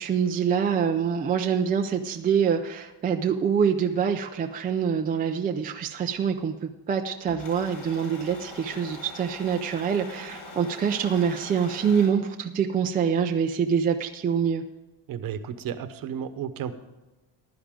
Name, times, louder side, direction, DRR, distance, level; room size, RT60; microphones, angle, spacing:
voice 1, 0.0-14.6, right 7 dB, 20° right, 4 dB, 0.4 m, -25 dB
sound 1, 7.3-12.1, left 2 dB, 55° left, 4.6 m, -42 dB
voice 2, 15.1-16.7, right 8 dB, 45° right, 11 dB, 1.0 m, -33 dB
15.5 x 11.5 x 3.7 m, 1.1 s
cardioid pair, 175°, 46 cm